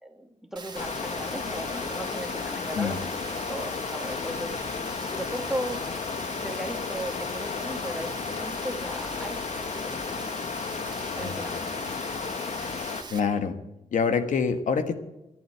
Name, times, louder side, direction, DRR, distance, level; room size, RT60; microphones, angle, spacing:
voice 1, 0.0-3.0 3.2-4.5 5.1-5.8 6.3-10.0 11.1-11.6, right 1 dB, 5° right, 4 dB, 2.0 m, -36 dB
Rain, 0.6-13.2, right 4 dB, 35° right, 2.4 m, -41 dB
sound 1, 0.7-13.0, left 5 dB, 65° left, 1.1 m, -33 dB
voice 2, 11.2-11.6 13.1-13.5 13.9-14.9, left 5 dB, 85° left, 9 dB, 1.4 m, -26 dB
12.5 x 11.0 x 7.9 m, 0.93 s
wide cardioid pair, 135°, 13 cm